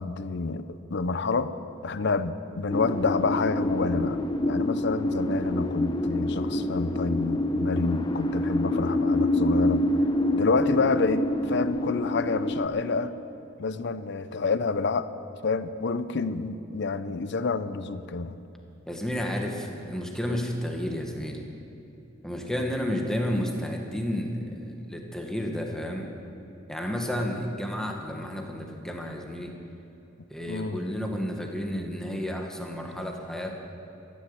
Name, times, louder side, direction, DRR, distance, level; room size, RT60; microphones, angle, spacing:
voice 1, 0.0-1.5 1.8-9.9 10.3-13.1 13.6-15.1 15.4-18.4 30.5-30.8, left 4 dB, 60° left, 12 dB, 0.6 m, -28 dB
sound 1, 2.7-12.7, left 1 dB, 20° left, 0.7 m, -27 dB
voice 2, 18.9-21.4 22.2-26.1 26.7-29.5 30.3-33.6, equal, 5° left, 1 dB, 1.3 m, -31 dB
14.0 x 11.0 x 7.9 m, 2.9 s
head